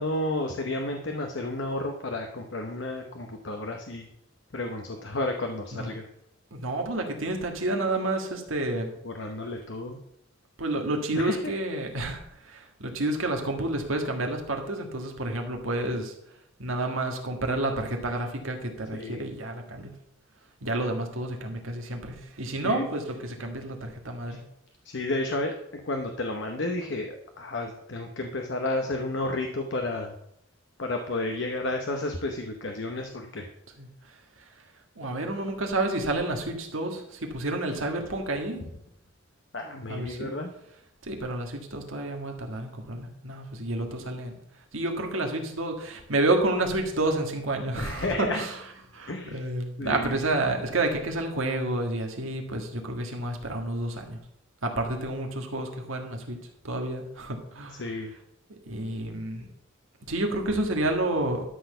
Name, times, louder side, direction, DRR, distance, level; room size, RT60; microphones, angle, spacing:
voice 1, 0.0-4.1 4.5-6.1 9.0-10.0 11.1-11.5 18.9-19.2 22.6-22.9 24.3-24.4 24.8-30.1 30.8-33.5 39.5-40.5 47.8-48.5 49.1-49.5 49.8-50.2 57.8-58.1, left 2 dB, 60° left, 4 dB, 0.9 m, -32 dB
voice 2, 6.5-8.9 10.6-16.1 16.6-19.9 20.6-24.4 33.8-33.9 35.0-38.7 39.9-40.4 41.0-44.4 44.7-48.6 48.9-54.2 54.6-56.4 56.6-57.8 58.7-59.5 60.1-61.4, right 2 dB, 90° right, 3 dB, 1.8 m, -30 dB
12.5 x 4.2 x 6.7 m, 0.77 s
head